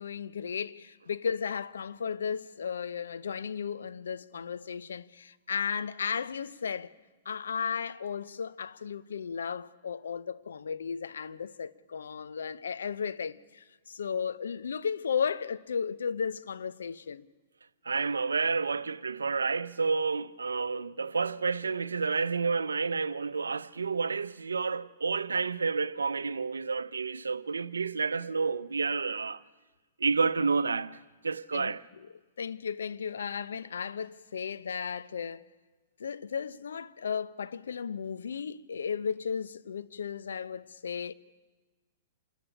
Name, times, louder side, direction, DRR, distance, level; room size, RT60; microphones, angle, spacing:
voice 1, 0.0-6.9 7.3-17.3 31.5-31.7 32.4-35.4 36.0-41.1, left 6 dB, 80° left, 0.8 m, -35 dB
voice 2, 17.8-29.4 30.0-31.8, right 4 dB, 90° right, 0.6 m, -30 dB
26.5 x 13.5 x 9.9 m
hypercardioid pair, 115°, 0 cm